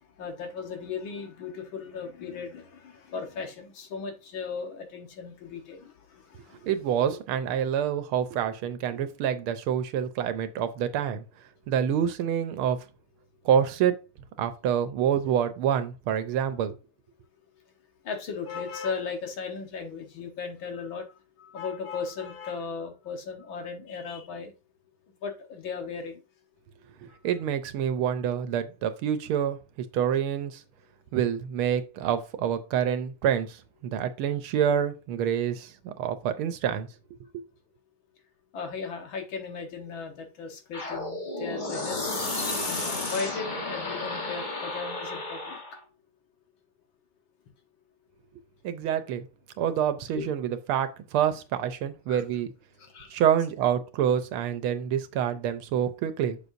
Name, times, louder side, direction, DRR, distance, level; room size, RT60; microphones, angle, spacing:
voice 1, 0.0-6.7 18.0-24.5 25.2-26.2 27.1-27.2 38.5-42.1 42.6-45.6 50.2-50.3 52.1-52.2 52.8-53.2, left 5 dB, 70° left, 2.0 m, -37 dB
voice 2, 6.6-11.2 11.7-12.8 13.4-14.0 14.4-16.7 27.0-29.6 29.9-30.6 31.1-36.9 37.3-37.4 48.6-49.3 49.6-52.5 53.1-56.4, right 9 dB, 85° right, 1.6 m, -27 dB
sound 1, 40.7-45.8, left 2 dB, 25° left, 1.1 m, -32 dB
7.0 x 6.6 x 2.6 m
omnidirectional pair, 2.3 m